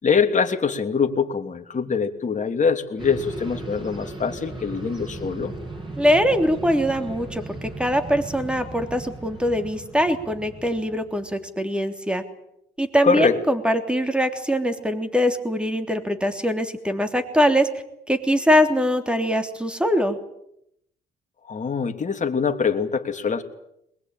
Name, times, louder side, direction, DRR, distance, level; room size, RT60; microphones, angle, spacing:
voice 1, 0.0-5.5 13.0-13.4 21.5-23.4, left 5 dB, 40° left, 5 dB, 2.9 m, -23 dB
Helicopter flying over hospital grounds, 3.0-11.3, right 2 dB, 25° right, 7.9 m, -37 dB
voice 2, 6.0-12.2 12.8-17.7 18.1-20.2, equal, 5° right, 7 dB, 3.4 m, -22 dB
23.0 x 21.0 x 9.2 m, 0.78 s
cardioid pair, 90°, 20 cm